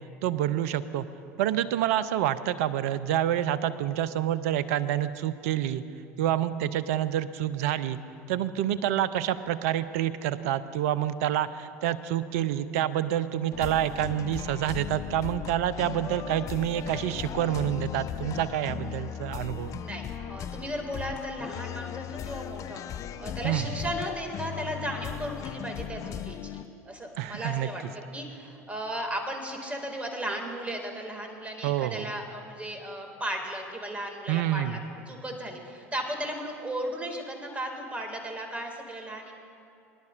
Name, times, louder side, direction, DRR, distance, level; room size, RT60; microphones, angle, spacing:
voice 1, 0.2-1.1 1.4-5.8 6.2-8.0 8.3-19.8 23.4-23.7 27.2-27.7 31.6-32.1 34.3-34.8, right 11 dB, 65° right, 15 dB, 0.5 m, -28 dB
sound 1, 13.5-26.6, left 10 dB, 40° left, 0.4 m, -37 dB
voice 2, 19.7-34.8 35.1-39.4, right 1 dB, 15° right, 3 dB, 2.1 m, -36 dB
23.0 x 10.5 x 2.5 m, 2.7 s
hypercardioid pair, 70°, 8 cm